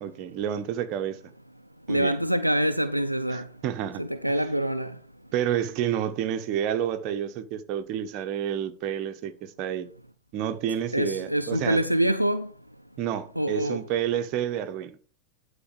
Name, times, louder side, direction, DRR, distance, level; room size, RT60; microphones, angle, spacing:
voice 1, 0.0-1.2 1.9-2.1 3.3-4.0 5.3-9.9 10.3-11.8 13.0-15.0, right 10 dB, 40° right, 1.0 m, -29 dB
voice 2, 1.9-3.4 4.0-4.9 10.9-12.5 13.4-13.8, right 1 dB, 90° right, 0.5 m, -25 dB
11.0 x 4.1 x 5.5 m
figure-of-eight pair, 90°, 0 cm